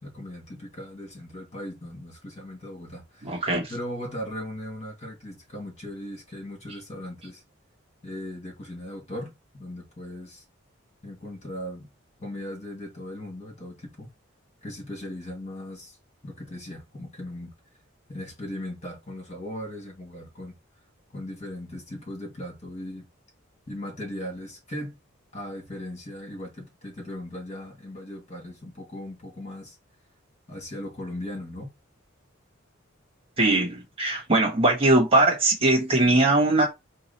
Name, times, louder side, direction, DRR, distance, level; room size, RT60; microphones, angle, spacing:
voice 1, 0.0-3.4 3.7-7.4 8.0-10.4 11.0-11.9 12.2-14.1 14.6-16.0 16.2-17.5 18.1-20.5 21.1-23.1 23.7-25.0 25.3-29.8 30.5-31.7, left 1 dB, 35° left, 2.5 m, -38 dB
voice 2, 3.2-3.7 33.4-36.7, right 2 dB, 30° right, 1.3 m, -21 dB
4.8 x 2.4 x 4.2 m
head